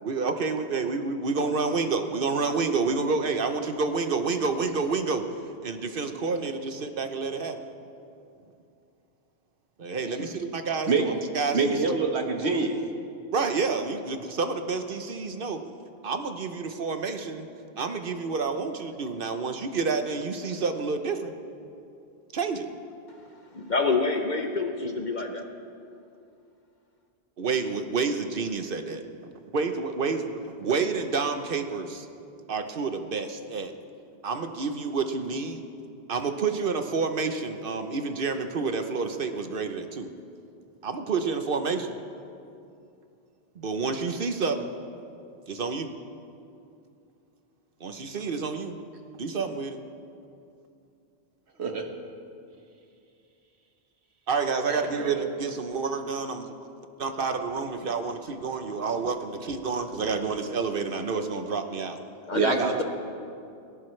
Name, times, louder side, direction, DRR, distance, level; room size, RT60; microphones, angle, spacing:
voice 1, 0.0-5.2 5.6-7.6 9.8-11.8 13.3-15.6 16.0-17.5 17.8-21.3 22.3-22.7 27.4-29.0 29.5-32.1 32.5-33.7 34.2-35.6 36.1-40.1 40.8-41.9 43.6-44.7 45.5-45.9 47.8-48.8 49.2-49.8 54.3-56.5 57.0-62.0 62.5-62.7, right 4 dB, 60° right, 7 dB, 1.0 m, -29 dB
voice 2, 11.5-12.8 51.6-51.9 54.7-55.2 62.3-62.8, right 4 dB, 80° right, 3 dB, 1.6 m, -26 dB
voice 3, 23.5-25.4 62.3-62.8, left 3 dB, 50° left, 4 dB, 0.9 m, -27 dB
18.5 x 17.0 x 3.2 m, 2.5 s
omnidirectional pair, 1.1 m